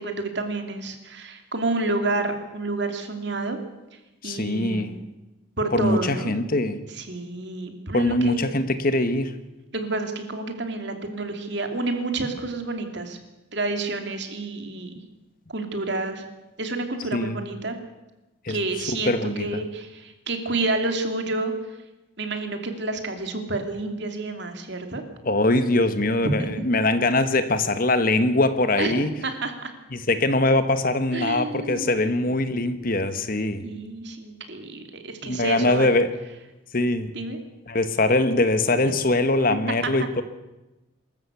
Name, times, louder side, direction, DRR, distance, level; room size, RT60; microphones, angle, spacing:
voice 1, 0.0-3.6 4.2-5.1 5.6-6.3 6.9-8.4 9.7-13.2 13.5-15.0 15.5-16.3 16.6-17.8 18.5-21.7 22.2-25.0 26.2-26.8 28.8-29.7 31.1-32.0 33.6-35.9 37.1-37.4 39.7-40.1, right 2 dB, 60° right, 5 dB, 2.9 m, -29 dB
voice 2, 4.2-4.9 5.7-6.8 7.9-9.3 17.1-17.3 18.4-18.6 19.1-19.5 25.2-29.1 29.9-33.7 35.2-36.1 36.7-37.1 37.7-40.2, left 2 dB, 45° left, 10 dB, 1.3 m, -22 dB
24.0 x 14.0 x 8.3 m, 1.0 s
head